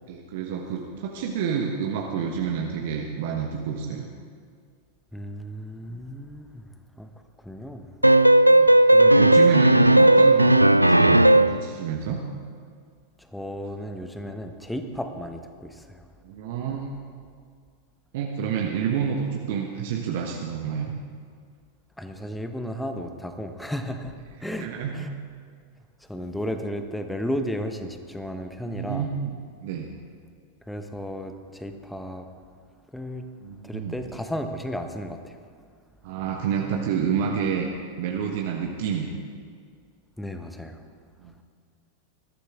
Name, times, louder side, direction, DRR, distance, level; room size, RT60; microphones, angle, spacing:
voice 1, 0.1-4.1 8.4-12.2 14.3-14.4 16.2-16.9 18.1-20.9 24.6-25.0 28.4-29.9 33.4-34.0 36.0-37.7 38.0-39.1 41.2-41.4, right 7 dB, 50° right, 1 dB, 1.3 m, -29 dB
voice 2, 5.1-6.6 7.0-7.1 7.4-7.9 13.3-16.0 22.0-24.1 24.4-24.7 24.9-25.1 26.1-29.0 30.7-32.2 32.9-33.3 33.6-35.3 40.2-40.8, equal, 5° left, 7 dB, 1.2 m, -33 dB
sound 1, 8.0-11.7, right 1 dB, 85° right, 0.3 m, -15 dB
20.5 x 13.0 x 3.7 m, 2.1 s
figure-of-eight pair, 90°, 0 cm